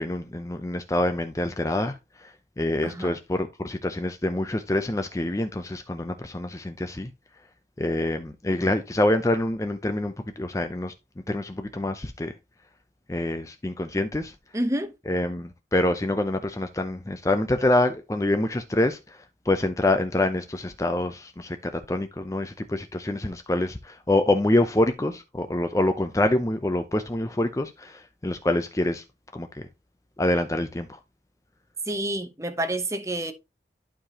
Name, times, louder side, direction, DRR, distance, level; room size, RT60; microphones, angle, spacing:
voice 1, 0.0-1.9 2.6-7.1 7.8-10.9 11.3-12.3 13.1-14.3 15.1-19.0 19.5-29.0 29.3-29.6 30.2-30.9, left 1 dB, 20° left, 0.5 m, -26 dB
voice 2, 2.8-3.2 14.5-14.9 31.9-33.3, right 1 dB, 15° right, 0.9 m, -28 dB
11.5 x 4.8 x 2.9 m
head